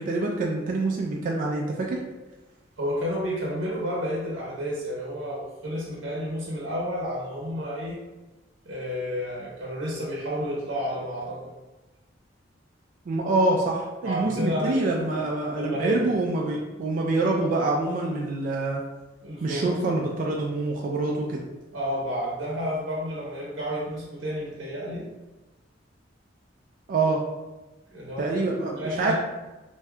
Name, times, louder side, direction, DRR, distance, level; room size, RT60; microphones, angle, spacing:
voice 1, 0.0-2.0 13.1-18.8 19.4-21.4 26.9-27.2 28.2-29.1, right 2 dB, 45° right, -1 dB, 0.3 m, -26 dB
voice 2, 2.8-8.0 8.7-11.5 14.0-15.1 15.5-16.0 19.2-19.8 21.7-25.1 27.9-28.3 28.8-29.1, equal, 70° right, -5 dB, 0.7 m, -31 dB
2.6 x 2.2 x 3.4 m, 1.1 s
head